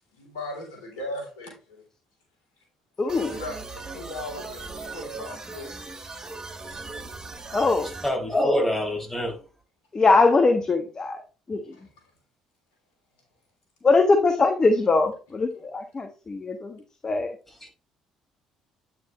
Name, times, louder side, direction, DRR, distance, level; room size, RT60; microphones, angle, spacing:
voice 1, 0.1-1.8 3.0-5.7 11.6-12.0, left 1 dB, 75° left, 3.4 m, -38 dB
voice 2, 3.0-3.3 7.5-7.9 9.9-11.2 11.5-11.6 13.8-16.7 17.0-17.3, left 3 dB, 30° left, 1.2 m, -21 dB
sound 1, 3.1-8.1, right 3 dB, 30° right, 2.3 m, -38 dB
voice 3, 8.0-9.4 17.6-17.7, left 1 dB, 10° left, 4.8 m, -25 dB
9.4 x 6.1 x 3.1 m
hypercardioid pair, 50°, 2 cm